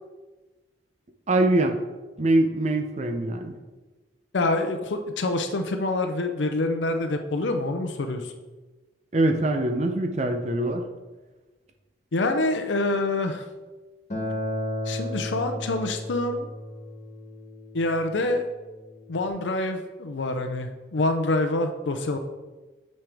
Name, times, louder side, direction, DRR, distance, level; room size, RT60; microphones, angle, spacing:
voice 1, 1.3-1.8 2.2-3.5 9.1-10.9, right 2 dB, 40° right, 5 dB, 0.6 m, -23 dB
voice 2, 4.3-8.3 12.1-13.4 14.9-16.5 17.7-18.5 19.1-22.2, left 2 dB, 85° left, 6 dB, 0.6 m, -26 dB
Acoustic guitar, 14.1-19.3, left 1 dB, 40° left, 1.8 m, -34 dB
8.8 x 5.3 x 3.5 m, 1.2 s
head